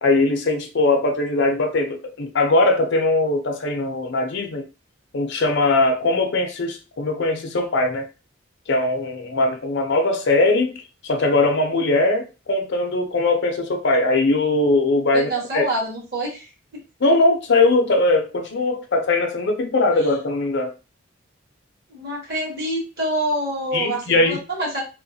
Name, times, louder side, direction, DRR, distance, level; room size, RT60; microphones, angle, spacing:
voice 1, 0.0-4.6 5.1-8.1 8.7-10.8 11.0-15.7 17.0-20.7 23.7-24.4, left 2 dB, 60° left, 5 dB, 0.6 m, -20 dB
voice 2, 15.1-16.5 21.9-24.8, right 1 dB, 50° right, -3 dB, 1.6 m, -26 dB
3.0 x 2.1 x 2.7 m, 0.30 s
head